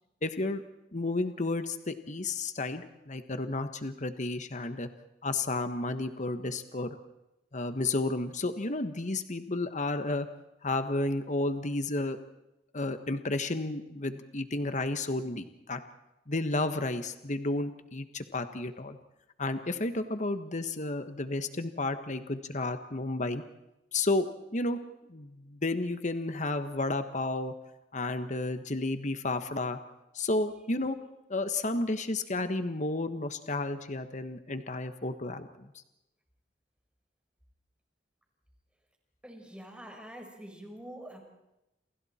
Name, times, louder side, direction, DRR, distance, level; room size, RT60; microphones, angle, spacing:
voice 1, 0.2-0.6 0.9-4.9 5.2-7.0 7.5-10.3 10.6-12.2 12.7-15.8 16.3-19.0 19.4-23.4 23.9-24.8 25.1-27.5 27.9-29.8 30.1-31.0 31.3-35.7, left 2 dB, 40° left, 9 dB, 1.4 m, -32 dB
voice 2, 39.2-41.2, right 1 dB, 5° right, 2 dB, 4.7 m, -45 dB
29.5 x 28.0 x 4.4 m, 0.91 s
head